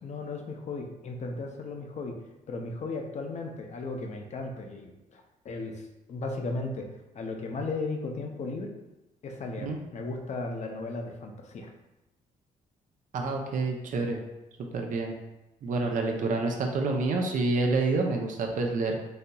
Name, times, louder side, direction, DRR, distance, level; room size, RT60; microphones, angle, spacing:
voice 1, 0.0-2.2 2.5-6.9 7.1-8.7 9.2-11.7, left 3 dB, 50° left, 3 dB, 0.6 m, -36 dB
voice 2, 13.1-14.2 14.7-15.1 15.6-19.0, right 3 dB, 60° right, 2 dB, 0.5 m, -28 dB
4.0 x 2.8 x 2.3 m, 0.94 s
cardioid pair, 80°, 15 cm